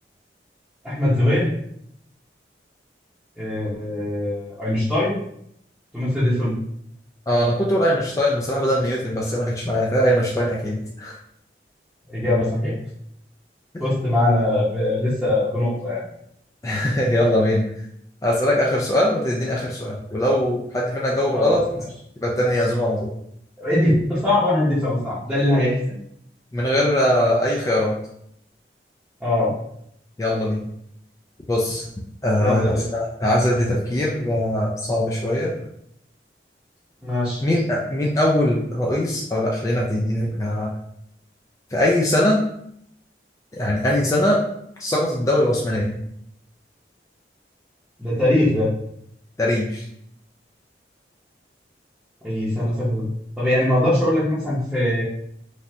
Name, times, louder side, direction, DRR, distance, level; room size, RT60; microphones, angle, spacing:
voice 1, 0.8-1.5 3.4-5.2 5.9-6.6 12.1-12.7 13.8-16.1 21.3-21.5 23.6-26.0 29.2-29.5 32.4-32.9 37.0-37.4 48.0-48.7 52.2-53.1 53.4-55.0, left 1 dB, 5° right, -12 dB, 0.7 m, -21 dB
voice 2, 7.3-11.2 16.6-17.6 18.2-21.6 22.2-23.1 26.5-28.0 30.2-30.7 31.5-31.8 32.2-35.5 37.4-40.7 41.7-42.4 43.5-44.4 44.8-46.0 49.4-49.9, left 1 dB, 20° left, -3 dB, 0.3 m, -21 dB
3.3 x 2.5 x 2.7 m, 0.72 s
head